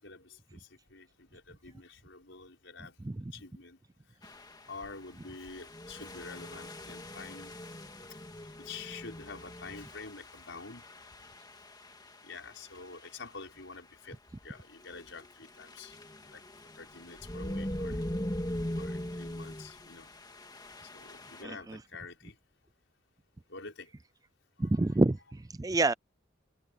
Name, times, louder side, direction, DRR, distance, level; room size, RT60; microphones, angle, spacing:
voice 1, 0.0-3.0 3.3-3.8 4.7-7.5 8.6-10.9 11.2-11.4 12.1-14.2 14.4-15.9 16.3-16.4 16.8-18.0 18.8-20.1 20.9-22.4 23.5-23.9 24.6-24.9, left 4 dB, 65° left, 6.1 m, -47 dB
sound 1, 4.2-13.3 14.3-14.5 14.8-21.4, left 1 dB, 20° left, 2.0 m, -42 dB
voice 2, 24.6-25.9, right 2 dB, 20° right, 0.4 m, -27 dB
head